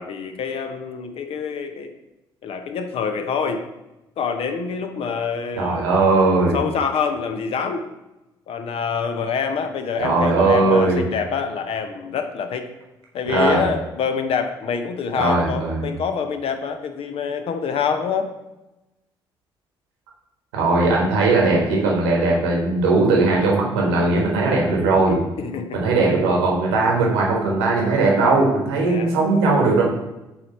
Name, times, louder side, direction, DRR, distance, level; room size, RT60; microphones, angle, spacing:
voice 1, 0.0-1.9 2.4-3.6 4.2-5.9 6.5-7.8 8.5-12.7 13.1-18.3 20.9-21.1 25.4-25.8 28.8-29.2, left 6 dB, 50° left, 7 dB, 0.7 m, -26 dB
voice 2, 5.6-6.6 10.0-11.0 13.3-13.6 15.2-15.8 20.5-25.2 25.7-29.8, right 3 dB, 75° right, -2 dB, 1.3 m, -19 dB
7.5 x 3.2 x 4.1 m, 0.98 s
figure-of-eight pair, 45°, 13 cm